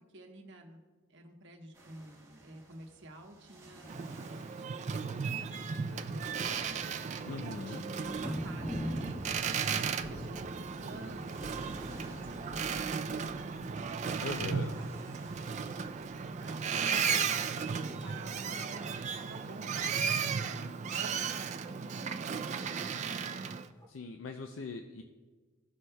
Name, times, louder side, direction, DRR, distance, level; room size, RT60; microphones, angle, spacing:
voice 1, 0.1-0.8 1.1-4.6 5.0-13.9 14.6-15.3 15.7-17.1 17.5-23.4, right 1 dB, 65° right, 2 dB, 1.1 m, -51 dB
sound 1, 1.7-19.3, right 1 dB, 15° right, 1.4 m, -57 dB
Boat Water vehicle, 3.8-23.7, right 6 dB, 40° right, 0.3 m, -35 dB
sound 2, 5.8-16.9 17.3-17.6 18.1-18.2 18.4-19.7 21.9-22.0 23.8-23.9, equal, 25° left, 1.4 m, -44 dB
voice 2, 7.3-7.8 14.2-14.7 23.9-25.0, left 3 dB, 90° left, 6 dB, 0.5 m, -40 dB
16.5 x 6.2 x 2.2 m, 1.4 s
head